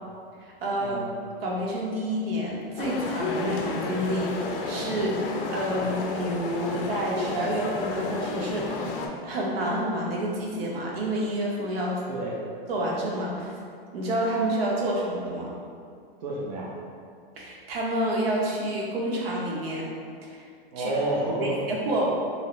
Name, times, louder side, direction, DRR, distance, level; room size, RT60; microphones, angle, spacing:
voice 1, 0.6-1.0 1.4-4.4 4.7-5.2 5.5-8.8 9.2-12.0 12.7-13.6 13.9-15.5 17.4-19.9 20.2-20.4 20.8-20.9 21.3-22.1, right 1 dB, 75° right, -3 dB, 0.8 m, -28 dB
sound 1, 2.8-9.1, left 3 dB, 65° left, 0.4 m, -31 dB
voice 2, 12.1-12.4 16.2-16.7 20.7-21.6, right 1 dB, 45° right, -5 dB, 0.4 m, -29 dB
2.8 x 2.4 x 2.9 m, 2.2 s
supercardioid pair, 175°, 30 cm